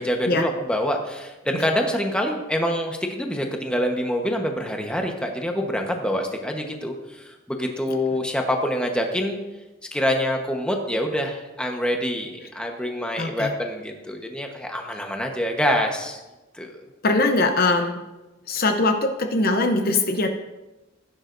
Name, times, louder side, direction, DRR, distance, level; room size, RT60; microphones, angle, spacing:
voice 1, 0.0-9.4 9.9-16.2 16.5-16.7, equal, 5° left, 2 dB, 1.1 m, -26 dB
voice 2, 13.2-13.5 17.0-18.0 18.5-20.3, left 2 dB, 50° left, 5 dB, 0.8 m, -21 dB
16.0 x 9.7 x 2.6 m, 1.1 s
head